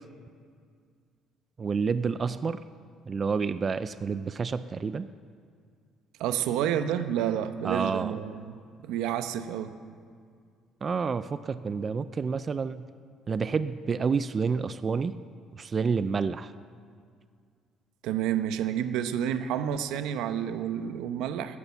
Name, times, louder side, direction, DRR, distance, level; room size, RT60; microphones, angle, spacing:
voice 1, 1.6-2.6 3.1-5.1 7.6-8.1 10.8-12.8 13.3-15.1 15.5-16.5, right 5 dB, 30° right, 13 dB, 0.4 m, -29 dB
voice 2, 6.2-8.6 8.9-9.7 18.0-21.6, right 10 dB, 90° right, 10 dB, 0.8 m, -29 dB
14.0 x 11.0 x 7.1 m, 2.1 s
cardioid pair, 135°, 0 cm